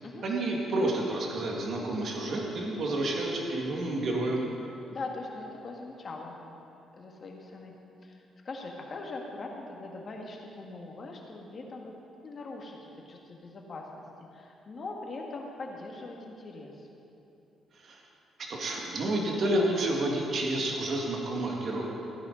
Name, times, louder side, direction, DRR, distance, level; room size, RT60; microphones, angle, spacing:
voice 1, 0.2-4.4 17.7-18.0 18.5-21.9, right 1 dB, 55° right, -1 dB, 2.0 m, -30 dB
voice 2, 4.9-6.4 7.0-7.7 8.0-11.9 12.2-13.9 14.3-16.9, left 3 dB, 45° left, 0 dB, 1.9 m, -41 dB
15.5 x 10.5 x 4.0 m, 2.9 s
cardioid pair, 90°, 0 cm